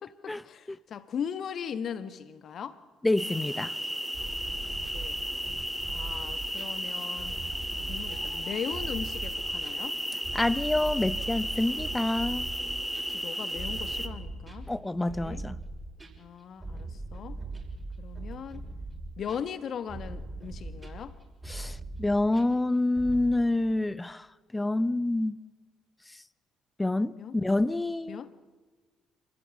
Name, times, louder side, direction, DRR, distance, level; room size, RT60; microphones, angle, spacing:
voice 1, 0.0-2.8 4.6-5.2 5.9-7.4 7.9-10.0 13.1-14.7 15.1-15.4 16.2-17.4 18.0-18.6 19.2-21.2 27.2-27.3 28.1-28.3, left 7 dB, 50° left, 1.3 m, -38 dB
voice 2, 3.0-3.7 10.3-12.5 14.7-15.6 21.5-24.3 24.5-25.3 26.8-28.2, left 2 dB, 15° left, 0.9 m, -27 dB
sound 1, 3.2-14.1, equal, 5° right, 2.0 m, -34 dB
sound 2, 4.1-23.3, right 2 dB, 20° right, 5.8 m, -40 dB
27.0 x 15.5 x 8.5 m
hypercardioid pair, 50°, 0 cm